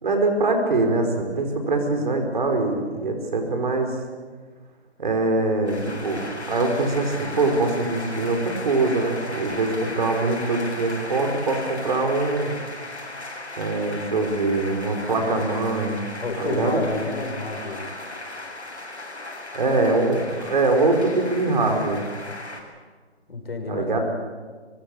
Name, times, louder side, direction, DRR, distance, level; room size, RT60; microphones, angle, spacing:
voice 1, 0.0-4.0 5.0-12.5 13.6-16.1 16.3-16.8 19.5-22.0 23.7-24.0, right 2 dB, 45° right, 4 dB, 5.1 m, -23 dB
sound 1, 5.6-22.6, left 2 dB, 85° left, 7.5 m, -36 dB
voice 2, 16.2-17.9 23.3-24.0, left 3 dB, 60° left, 4 dB, 6.2 m, -30 dB
24.0 x 20.5 x 8.8 m, 1.5 s
figure-of-eight pair, 160°, 33 cm